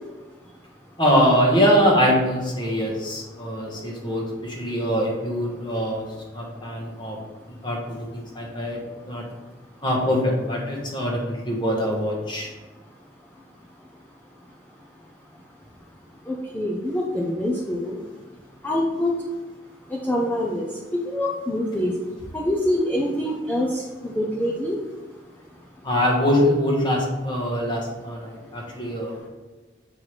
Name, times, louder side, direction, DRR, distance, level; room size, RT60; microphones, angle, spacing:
voice 1, 1.0-6.0 6.3-7.2 7.6-8.8 9.1-9.2 9.8-12.5 25.8-29.2, equal, 25° left, -1 dB, 1.1 m, -23 dB
voice 2, 16.3-18.0 18.6-19.1 19.9-20.6 20.9-21.9 22.3-24.8, left 1 dB, 10° left, -3 dB, 0.6 m, -25 dB
7.5 x 4.7 x 3.2 m, 1.3 s
head